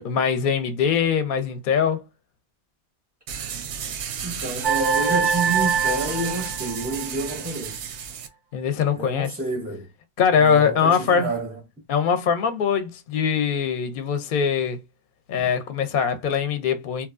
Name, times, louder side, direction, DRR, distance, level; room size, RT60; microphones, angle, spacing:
voice 1, 0.0-2.0 8.5-9.3 10.2-11.3 11.9-14.8 15.3-17.1, left 7 dB, 60° left, 0.6 m, -22 dB
sound 1, 3.3-8.3, right 7 dB, 85° right, 0.8 m, -33 dB
voice 2, 4.2-7.9 8.9-9.9 10.4-11.6 15.4-15.5, right 2 dB, 15° right, 0.4 m, -29 dB
sound 2, 4.6-7.3, right 6 dB, 60° right, 0.6 m, -24 dB
2.9 x 2.2 x 2.4 m
omnidirectional pair, 1.1 m